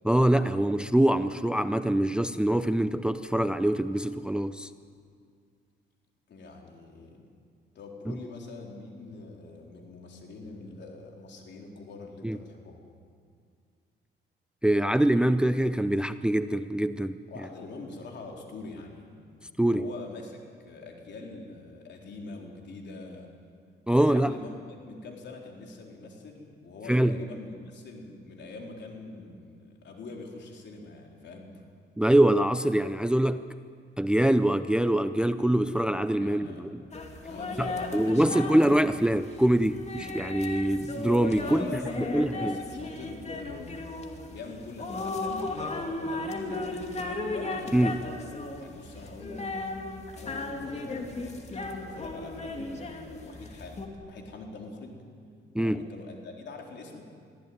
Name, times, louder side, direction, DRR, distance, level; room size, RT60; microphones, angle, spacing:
voice 1, 0.0-4.7 8.1-8.2 12.2-12.4 14.6-17.2 19.6-19.9 23.9-24.4 26.9-27.2 32.0-33.4 34.0-36.8 37.6-41.7 42.1-42.6 47.7-48.0 55.5-55.8, right 1 dB, 5° right, 12 dB, 0.6 m, -24 dB
voice 2, 6.3-7.3 7.7-12.8 17.3-19.2 19.7-23.3 23.9-24.6 24.8-31.6 35.2-35.3 36.2-36.6 37.3-38.6 41.4-43.8 44.3-49.5 50.1-55.0 55.6-57.1, left 3 dB, 60° left, 1 dB, 4.2 m, -44 dB
sound 1, 36.9-53.9, left 2 dB, 35° left, 2.7 m, -36 dB
23.0 x 15.5 x 9.6 m, 2.2 s
cardioid pair, 90°, 20 cm